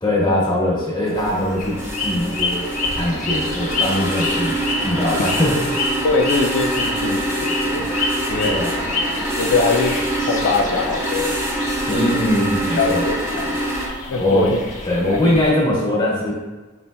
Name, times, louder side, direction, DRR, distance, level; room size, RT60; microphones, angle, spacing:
voice 1, 0.0-2.7 3.0-4.6 4.8-5.9 8.5-8.7 11.9-13.0 14.2-14.5 14.8-16.3, left 1 dB, 20° left, -6 dB, 1.4 m, -21 dB
sound 1, 1.0-13.9, right 1 dB, 15° right, 0.9 m, -25 dB
sound 2, 1.2-15.5, left 2 dB, 35° left, 0.8 m, -29 dB
voice 2, 6.0-7.8 8.3-8.5 9.4-11.4 11.9-12.2 12.8-13.4 14.1-14.6 15.1-15.2, left 3 dB, 65° left, 1 dB, 0.4 m, -22 dB
5.3 x 4.1 x 2.2 m, 1.2 s
head